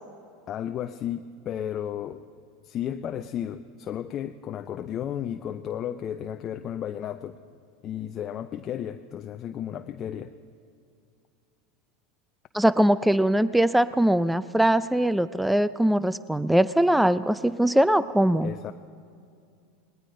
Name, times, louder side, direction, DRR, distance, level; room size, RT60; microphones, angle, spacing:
voice 1, 0.5-2.2 2.6-7.4 7.8-10.3 18.4-18.7, left 10 dB, 40° left, 7 dB, 0.6 m, -33 dB
voice 2, 12.5-18.5, right 1 dB, 5° right, 16 dB, 0.4 m, -21 dB
19.5 x 19.0 x 3.9 m, 2.4 s
hypercardioid pair, 105°, 0 cm